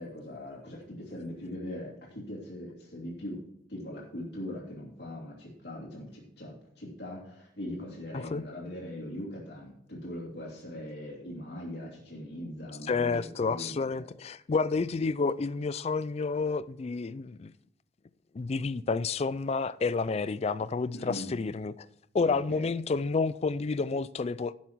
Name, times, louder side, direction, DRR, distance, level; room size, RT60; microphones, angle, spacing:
voice 1, 0.0-3.4 3.7-14.1 20.9-21.3 22.2-22.7, left 1 dB, 60° left, 2.8 m, -41 dB
voice 2, 12.9-17.5 18.3-21.9 22.1-24.5, left 4 dB, 35° left, 0.3 m, -30 dB
11.5 x 7.4 x 4.6 m
head